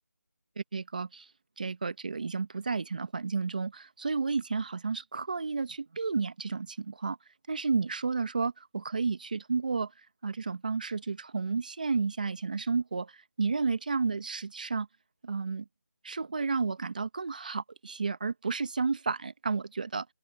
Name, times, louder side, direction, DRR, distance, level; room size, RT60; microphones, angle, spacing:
voice 1, 0.6-1.3 1.6-7.2 7.5-9.9 10.2-14.9 15.2-15.6 16.0-20.1, right 4 dB, 30° right, 1.4 m, -32 dB
open air
figure-of-eight pair, 175°, 9 cm